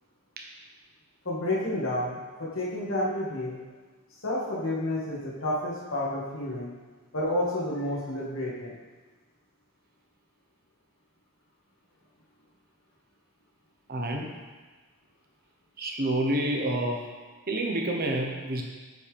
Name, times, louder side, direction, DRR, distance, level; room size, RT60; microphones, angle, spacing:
voice 1, 1.3-3.6 4.2-6.7 7.1-8.8, left 1 dB, 65° left, -5 dB, 2.0 m, -30 dB
voice 2, 13.9-14.3 15.8-17.0 17.5-18.6, right 1 dB, 45° right, 0 dB, 1.0 m, -28 dB
9.1 x 5.7 x 3.5 m, 1.4 s
head